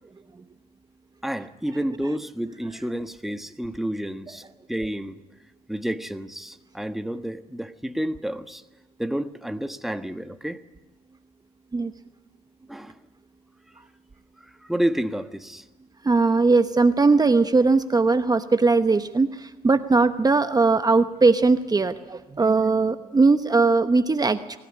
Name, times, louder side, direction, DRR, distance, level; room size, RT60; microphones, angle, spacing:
voice 1, 1.2-4.4 4.7-5.2 5.7-8.6 9.0-10.6 12.7-13.0 14.4-15.6, right 1 dB, ahead, 9 dB, 1.3 m, -30 dB
voice 2, 16.0-24.6, right 3 dB, 25° right, 10 dB, 1.0 m, -20 dB
24.0 x 17.0 x 10.0 m, 1.2 s
supercardioid pair, 75°, 16 cm